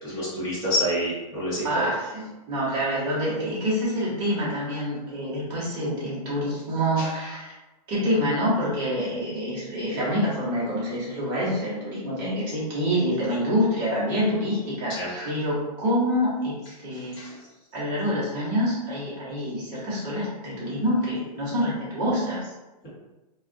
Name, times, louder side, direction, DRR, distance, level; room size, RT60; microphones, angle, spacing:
voice 1, 0.0-1.7 7.0-7.1 14.9-15.1 17.2-17.3, equal, 20° left, -10 dB, 1.1 m, -27 dB
voice 2, 1.6-7.5 7.9-16.6 16.8-17.2 17.7-22.5, equal, 20° right, -8 dB, 0.8 m, -26 dB
2.3 x 2.2 x 2.5 m, 1.0 s
hypercardioid pair, 170°, 21 cm